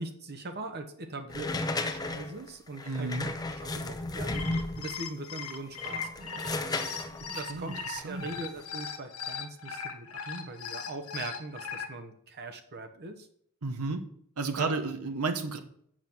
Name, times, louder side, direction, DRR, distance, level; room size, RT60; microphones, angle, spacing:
voice 1, 0.0-6.8 7.3-7.8 8.0-13.3 14.6-14.8, right 2 dB, 45° right, 6 dB, 1.0 m, -41 dB
sound 1, 1.3-5.0 5.7-8.6, left 2 dB, 15° left, 0.8 m, -34 dB
voice 2, 2.8-3.3 6.8-8.3 13.6-14.0 14.4-15.6, right 3 dB, 85° right, 7 dB, 1.0 m, -33 dB
sound 2, 4.1-11.9, left 6 dB, 85° left, 1.4 m, -38 dB
7.4 x 6.2 x 7.2 m, 0.66 s
head